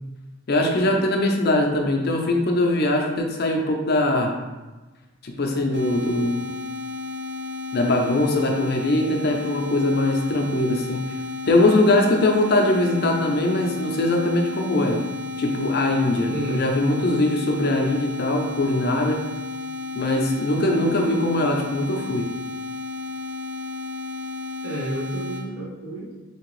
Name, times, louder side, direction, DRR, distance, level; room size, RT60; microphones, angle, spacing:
voice 1, 0.5-4.3 5.2-6.4 7.7-11.0 11.5-15.0 15.4-19.2 20.0-22.3, left 2 dB, 45° left, 1 dB, 0.4 m, -21 dB
sound 1, 5.7-25.4, left 3 dB, 55° right, 0.7 m, -33 dB
voice 2, 16.3-16.7 24.6-26.2, right 1 dB, 75° right, -7 dB, 1.5 m, -30 dB
3.6 x 2.8 x 3.0 m, 1.2 s
head